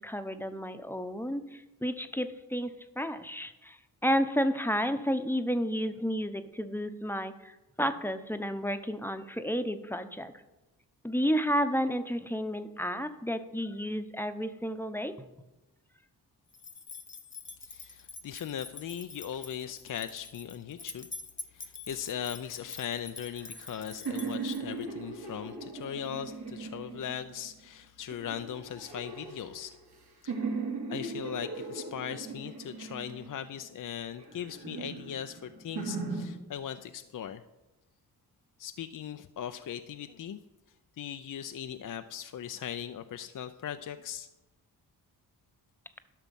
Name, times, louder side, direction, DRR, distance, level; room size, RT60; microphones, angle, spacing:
voice 1, 0.0-3.8 4.0-7.5 7.8-10.3 11.0-15.2, equal, 5° left, 9 dB, 0.9 m, -31 dB
sound 1, 16.5-24.9, left 3 dB, 30° left, 1.0 m, -46 dB
voice 2, 17.6-21.1 21.5-29.8 30.2-30.3 30.9-37.4 38.6-40.4 41.0-44.3, left 9 dB, 50° left, 9 dB, 0.6 m, -39 dB
sound 2, 23.2-27.5 28.1-30.0 30.3-33.6 34.2-36.2, right 4 dB, 70° right, 2.7 m, -38 dB
12.0 x 6.0 x 5.4 m, 1.0 s
supercardioid pair, 45°, 41 cm